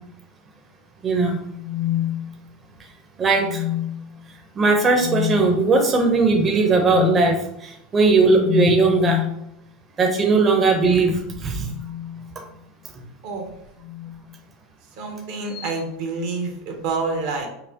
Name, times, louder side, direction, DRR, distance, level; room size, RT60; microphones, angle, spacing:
voice 1, 1.0-1.4 3.2-3.6 4.6-9.2 10.0-11.7 12.9-13.0, right 3 dB, 30° right, 2 dB, 0.6 m, -18 dB
sound 1, 1.5-2.8 3.4-4.2 5.0-5.5 6.9-7.2 8.4-9.4 10.9-12.8 13.8-14.3 15.5-15.8, left 13 dB, 35° left, 0.4 m, -28 dB
voice 2, 13.2-13.6 15.0-17.5, right 3 dB, 65° right, 3 dB, 1.0 m, -28 dB
5.6 x 2.0 x 2.8 m, 0.79 s
supercardioid pair, 110°, 0 cm